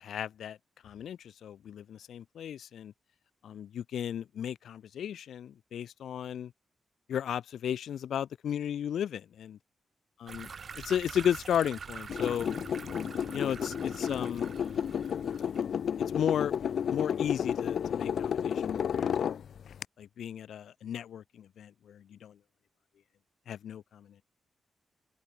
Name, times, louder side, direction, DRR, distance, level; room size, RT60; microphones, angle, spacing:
voice 1, 0.0-0.6 0.8-2.9 3.4-6.5 7.1-9.6 10.2-10.5 10.8-12.5 13.3-14.5 16.1-16.5 16.9-19.3 20.0-22.3 23.5-24.1, left 9 dB, 80° left, 1.0 m, -34 dB
sound 1, 10.3-15.6, right 5 dB, 40° right, 0.5 m, -45 dB
sound 2, 12.1-19.8, left 8 dB, 65° left, 0.6 m, -32 dB
open air
wide cardioid pair, 160°, 0 cm